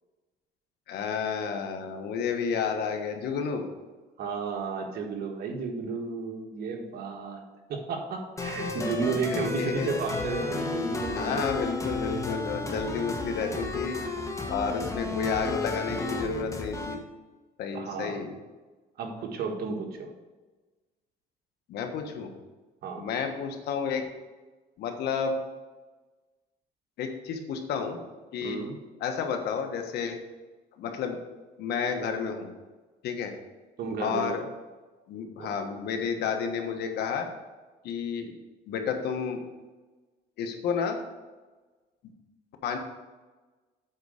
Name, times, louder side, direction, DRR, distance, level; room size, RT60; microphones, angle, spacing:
voice 1, 0.9-3.6 9.1-9.9 11.1-14.0 14.5-17.0 17.6-18.3 21.7-22.3 23.0-24.0 24.8-25.4 27.0-28.0 28.3-28.6 29.0-30.2 30.8-31.2 31.6-32.5 33.0-33.3 34.0-34.4 35.1-37.3 37.8-38.4 38.7-39.4 40.4-41.1 42.6-42.8, left 6 dB, 75° left, 5 dB, 1.3 m, -31 dB
voice 2, 4.2-7.4 7.7-11.4 17.7-18.2 19.0-20.1 22.8-23.1 28.4-28.8 33.8-34.4 35.4-35.5, right 4 dB, 65° right, 2 dB, 1.6 m, -33 dB
sound 1, 8.4-16.9, left 2 dB, 20° left, 1.2 m, -33 dB
8.2 x 4.7 x 6.6 m, 1.3 s
cardioid pair, 110°, 17 cm